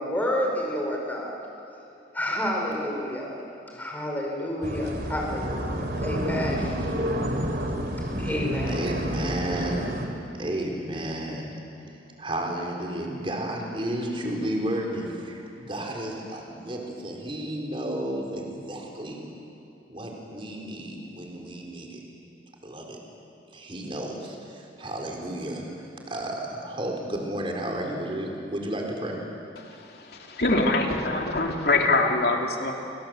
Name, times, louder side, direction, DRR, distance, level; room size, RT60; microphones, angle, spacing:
voice 1, 0.0-1.4 2.1-3.3 3.7-6.9 8.2-8.8, left 1 dB, 10° left, -1 dB, 5.1 m, -29 dB
sound 1, 4.6-10.1, equal, 60° right, 3.3 m, -29 dB
voice 2, 8.7-10.0 10.3-11.6 12.2-19.2 19.9-22.0 22.6-23.0 23.5-25.7 26.1-29.2, right 1 dB, 30° right, 0 dB, 4.2 m, -32 dB
voice 3, 30.1-32.7, left 2 dB, 60° left, 1 dB, 3.2 m, -23 dB
29.0 x 25.0 x 7.9 m, 2.7 s
head